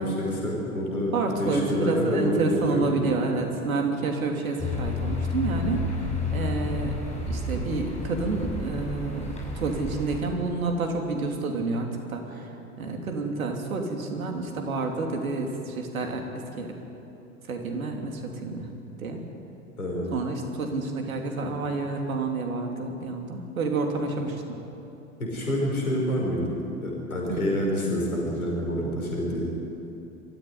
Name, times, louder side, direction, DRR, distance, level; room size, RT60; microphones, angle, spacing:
voice 1, 0.0-3.0 19.8-20.2 25.2-29.4, left 1 dB, 85° left, -2 dB, 5.8 m, -27 dB
voice 2, 1.1-5.9 6.3-6.9 7.3-12.5 12.8-16.2 16.6-16.7 17.5-18.7 19.0-19.2 20.1-24.4 27.3-27.4, right 3 dB, 75° right, 3 dB, 3.2 m, -29 dB
sound 1, 4.6-10.2, left 2 dB, 15° left, 6.4 m, -31 dB
23.0 x 15.0 x 9.8 m, 3.0 s
figure-of-eight pair, 80°, 42 cm